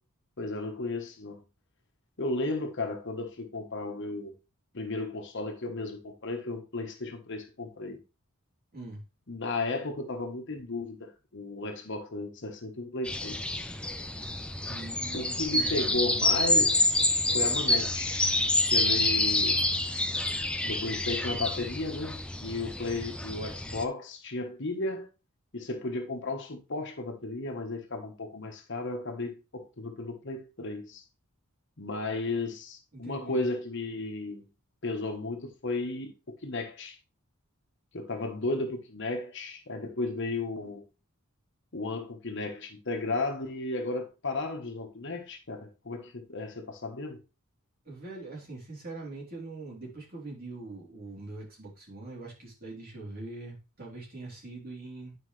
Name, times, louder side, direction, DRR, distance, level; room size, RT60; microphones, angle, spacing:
voice 1, 0.4-1.4 2.2-4.3 4.7-8.0 9.3-13.7 15.1-17.1 17.3-18.3 18.7-19.6 20.6-25.1 25.5-31.0 31.8-34.5 34.8-37.0 37.9-40.9 41.7-47.2, left 2 dB, 55° left, 1.2 m, -34 dB
sound 1, 13.0-23.8, left 2 dB, 5° left, 0.4 m, -28 dB
voice 2, 14.7-15.8 32.9-33.4 47.9-55.2, right 2 dB, 45° right, 3.5 m, -42 dB
9.6 x 5.2 x 3.2 m
head